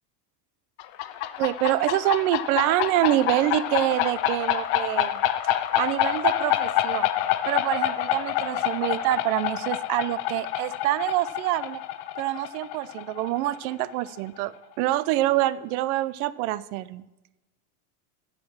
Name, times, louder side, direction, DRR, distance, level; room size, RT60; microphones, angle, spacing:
sound 1, 0.8-14.2, left 12 dB, 55° left, 0.7 m, -27 dB
voice 1, 1.4-5.2 5.8-7.1 7.5-11.8 12.2-17.0, right 15 dB, 70° right, 18 dB, 0.6 m, -26 dB
14.5 x 5.1 x 5.9 m, 1.0 s
cardioid pair, 160°, 46 cm